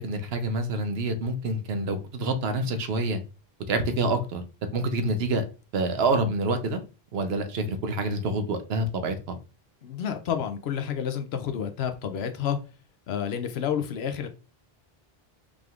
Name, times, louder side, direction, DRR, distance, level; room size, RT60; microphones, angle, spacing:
voice 1, 0.0-3.2 3.7-4.4 4.7-5.4 5.7-6.8 7.1-9.4, right 2 dB, 75° right, 8 dB, 1.0 m, -27 dB
voice 2, 9.8-12.6 13.1-14.3, left 8 dB, 85° left, 8 dB, 0.9 m, -29 dB
5.1 x 3.4 x 2.4 m, 0.33 s
omnidirectional pair, 1.0 m